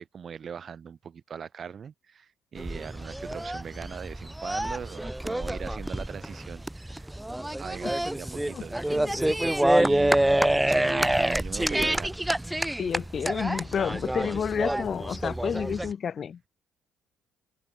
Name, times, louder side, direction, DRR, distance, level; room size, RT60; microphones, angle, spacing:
voice 1, 0.0-7.2 7.6-9.2 9.7-12.2, right 7 dB, 45° right, 6.3 m, -40 dB
sound 1, 2.6-15.9, right 1 dB, 5° right, 1.1 m, -27 dB
voice 2, 8.9-9.4 12.8-16.5, left 7 dB, 50° left, 0.5 m, -30 dB
cardioid pair, 85°, 0 cm